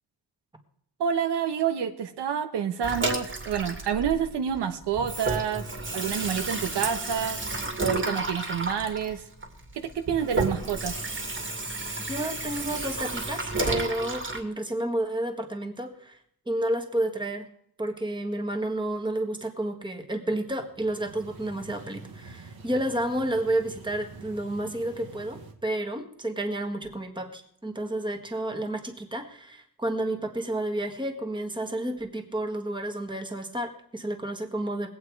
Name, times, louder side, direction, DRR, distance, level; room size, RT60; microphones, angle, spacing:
voice 1, 1.0-5.7 5.9-7.4 7.8-9.2 9.7-11.0, right 8 dB, 85° right, 8 dB, 1.3 m, -28 dB
Water tap faucet / Sink (filling or washing), 2.8-4.6 4.9-14.4, right 2 dB, 30° right, 2.4 m, -31 dB
voice 2, 12.1-16.2 16.4-17.4 17.8-34.9, right 1 dB, 10° right, 5 dB, 1.6 m, -31 dB
sound 1, 20.6-25.5, right 3 dB, 60° right, 2.0 m, -47 dB
20.5 x 8.6 x 4.8 m, 0.67 s
wide cardioid pair, 135°, 40 cm